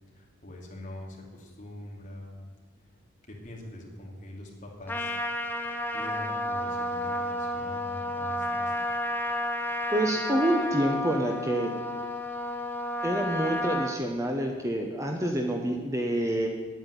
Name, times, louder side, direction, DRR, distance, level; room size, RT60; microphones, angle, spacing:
voice 1, 0.1-2.5 3.3-5.1 5.9-8.8, left 1 dB, 35° left, -1 dB, 2.6 m, -43 dB
Trumpet, 4.9-14.0, left 1 dB, 10° left, 0.8 m, -31 dB
voice 2, 9.9-11.7 13.0-16.5, right 1 dB, 15° right, 2 dB, 1.0 m, -27 dB
9.1 x 9.0 x 9.8 m, 1.5 s
head